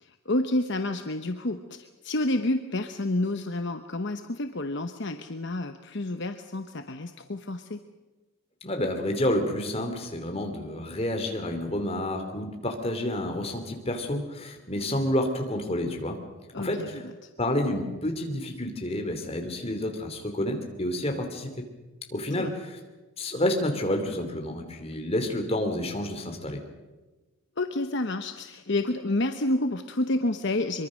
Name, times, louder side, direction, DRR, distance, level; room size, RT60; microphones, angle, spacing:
voice 1, 0.0-7.8 16.5-17.0 22.4-22.5 27.6-30.9, left 2 dB, 55° left, 7 dB, 1.0 m, -29 dB
voice 2, 8.6-16.2 16.6-17.0 17.4-21.6 22.1-22.8 23.2-26.6, left 1 dB, 25° left, 4 dB, 3.0 m, -29 dB
23.5 x 23.5 x 6.4 m, 1.2 s
head